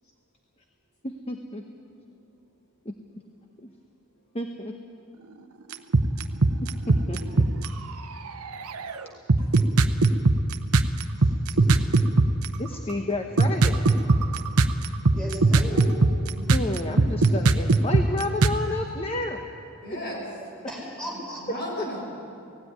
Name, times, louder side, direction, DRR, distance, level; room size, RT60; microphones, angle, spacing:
voice 1, 1.0-1.6 2.8-2.9 4.3-4.7 6.6-7.5 12.6-13.8 16.5-19.4 21.8-21.9, left 1 dB, 25° left, 4 dB, 0.9 m, -31 dB
sound 1, 5.7-7.7 8.3-8.9 9.3-12.4 13.4-18.5, right 3 dB, 90° right, 0.8 m, -18 dB
voice 2, 11.2-11.9 15.1-15.9 20.7-21.4, equal, 5° left, -3 dB, 4.7 m, -37 dB
voice 3, 16.9-17.2 18.7-18.8 19.8-20.3 21.3-22.2, equal, 50° left, -2 dB, 6.0 m, -36 dB
17.5 x 15.5 x 9.5 m, 2.5 s
head